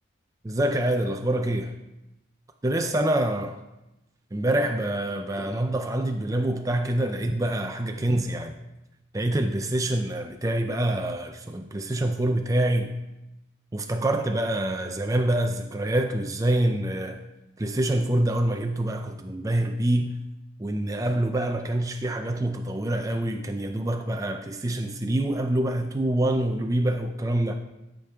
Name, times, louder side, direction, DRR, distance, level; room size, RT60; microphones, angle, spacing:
voice 1, 0.4-1.7 2.6-3.6 4.3-8.6 9.1-13.0 13.7-17.2 17.6-20.2 20.6-27.6, right 1 dB, 15° right, 0.4 m, -26 dB
13.0 x 5.2 x 3.5 m
head